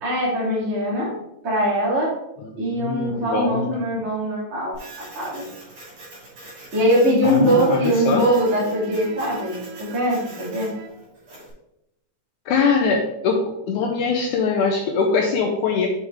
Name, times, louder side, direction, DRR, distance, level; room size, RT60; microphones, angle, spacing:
voice 1, 0.0-1.1 1.4-2.1 2.5-5.5 6.7-10.7, equal, 20° right, -8 dB, 2.6 m, -22 dB
voice 2, 2.4-3.7 7.2-8.2 12.5-13.4 13.7-15.9, left 5 dB, 80° left, 2 dB, 1.8 m, -22 dB
Printer, 4.7-11.5, right 2 dB, 50° right, 4.0 m, -43 dB
sound 1, 7.4-10.9, right 2 dB, 90° right, 2.5 m, -40 dB
7.0 x 5.4 x 3.4 m, 0.84 s
omnidirectional pair, 4.1 m